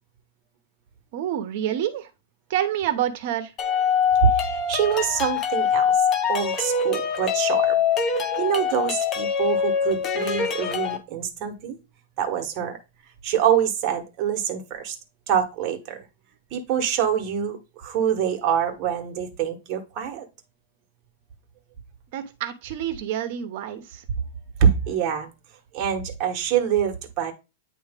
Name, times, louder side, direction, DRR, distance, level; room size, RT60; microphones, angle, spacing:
voice 1, 1.1-2.1 2.5-3.5 22.1-24.0, right 11 dB, 45° right, 0.9 m, -27 dB
sound 1, 3.6-11.0, left 6 dB, 25° left, 0.7 m, -23 dB
voice 2, 4.2-5.9 6.3-7.8 8.4-11.8 12.2-12.8 13.2-15.0 15.3-16.0 16.5-20.2 24.6-25.3 25.7-27.3, right 8 dB, 30° right, 1.3 m, -25 dB
8.9 x 3.1 x 3.6 m
supercardioid pair, 165°, 0 cm